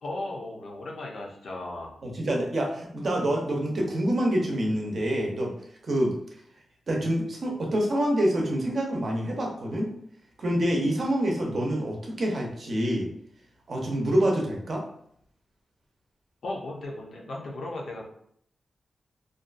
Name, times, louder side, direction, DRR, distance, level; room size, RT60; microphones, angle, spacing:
voice 1, 0.0-2.0 16.4-18.1, left 2 dB, 65° left, -1 dB, 0.6 m, -36 dB
voice 2, 2.0-5.5 5.8-6.1 6.9-9.9 10.4-13.1 13.7-14.8, right 1 dB, 50° right, 0 dB, 0.6 m, -26 dB
2.5 x 2.2 x 2.5 m, 0.67 s
wide cardioid pair, 145°, 0 cm